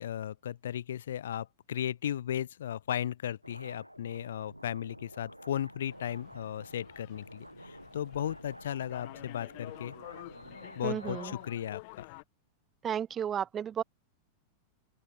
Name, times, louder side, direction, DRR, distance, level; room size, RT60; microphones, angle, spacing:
voice 1, 0.0-9.9 10.8-12.1, left 10 dB, 60° left, 0.6 m, -36 dB
sound 1, 3.4-11.7, equal, 90° right, 1.3 m, -50 dB
sound 2, 5.9-12.2, left 31 dB, 45° left, 1.2 m, -50 dB
voice 2, 10.8-11.3 12.8-13.8, right 9 dB, 25° right, 0.3 m, -33 dB
open air
figure-of-eight pair, 90°, 0 cm